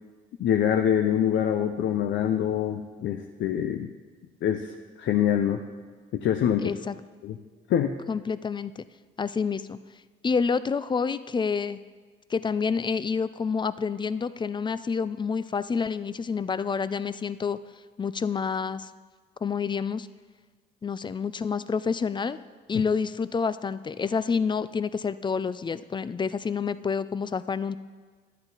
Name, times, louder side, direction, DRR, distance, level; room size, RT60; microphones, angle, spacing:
voice 1, 0.4-3.9 4.4-4.7 5.0-5.6 6.1-6.7 7.2-7.4 7.7-7.9 22.7-22.8, left 9 dB, 70° left, 5 dB, 0.6 m, -25 dB
voice 2, 6.6-6.9 8.1-8.9 9.2-9.8 10.2-11.8 12.3-17.6 18.0-18.9 19.4-20.1 20.8-22.4 22.7-27.8, left 5 dB, 25° left, 15 dB, 0.3 m, -28 dB
10.5 x 9.6 x 4.0 m, 1.5 s
cardioid pair, 90°, 20 cm